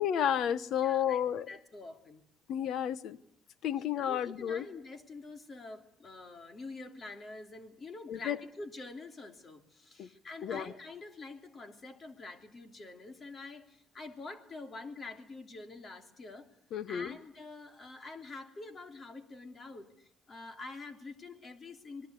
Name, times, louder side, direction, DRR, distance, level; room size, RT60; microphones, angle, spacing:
voice 1, 0.0-1.5 2.5-3.2 3.6-4.6 8.1-8.4 10.0-10.1 10.4-10.7 16.7-17.2, left 9 dB, 70° left, 16 dB, 1.2 m, -31 dB
voice 2, 0.8-1.2 1.5-2.3 4.0-16.5 16.9-22.1, left 3 dB, 35° left, 7 dB, 3.3 m, -46 dB
26.5 x 21.5 x 8.4 m, 0.72 s
cardioid pair, 125°, 0 cm